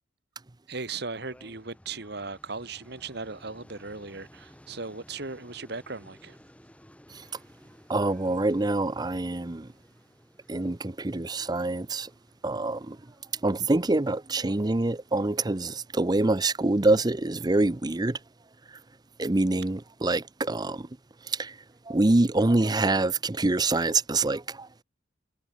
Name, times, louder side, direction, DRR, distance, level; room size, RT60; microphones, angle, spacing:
voice 1, 0.7-6.4, right 4 dB, 60° right, 2.1 m, -37 dB
sound 1, 1.1-15.8, equal, 5° left, 7.8 m, -56 dB
voice 2, 7.9-9.7 10.5-12.1 12.4-13.0 13.4-18.2 19.2-20.9 21.2-21.6 21.9-24.8, right 2 dB, 20° right, 0.6 m, -25 dB
head